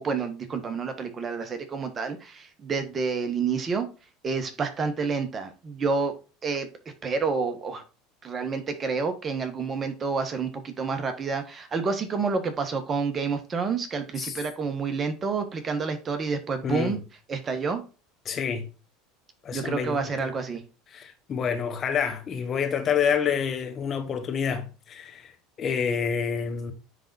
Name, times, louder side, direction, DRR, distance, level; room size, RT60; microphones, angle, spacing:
voice 1, 0.0-3.9 4.2-6.1 6.4-6.7 7.0-7.8 8.2-17.0 17.3-17.8 19.5-20.6, right 5 dB, 30° right, 1.4 m, -29 dB
voice 2, 16.6-17.0 18.2-18.7 19.4-20.1 20.9-25.3 25.6-26.7, left 7 dB, 40° left, 1.3 m, -28 dB
9.8 x 3.8 x 2.7 m
hypercardioid pair, 90°, 0 cm